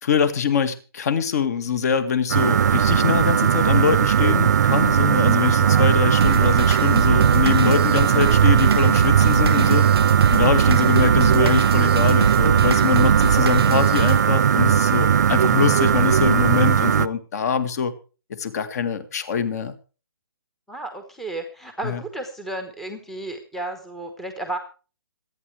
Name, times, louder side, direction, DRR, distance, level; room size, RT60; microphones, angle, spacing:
voice 1, 0.0-9.9 10.3-17.9 18.3-19.7 21.8-22.0, left 6 dB, 40° left, 11 dB, 2.0 m, -23 dB
sound 1, 2.3-17.1, right 8 dB, 45° right, 0.6 m, -18 dB
sound 2, 6.2-14.2, right 6 dB, 75° right, 0.8 m, -24 dB
voice 2, 20.7-24.6, right 2 dB, ahead, 5 dB, 1.1 m, -33 dB
26.5 x 9.5 x 3.3 m, 0.36 s
hypercardioid pair, 165°, 13 cm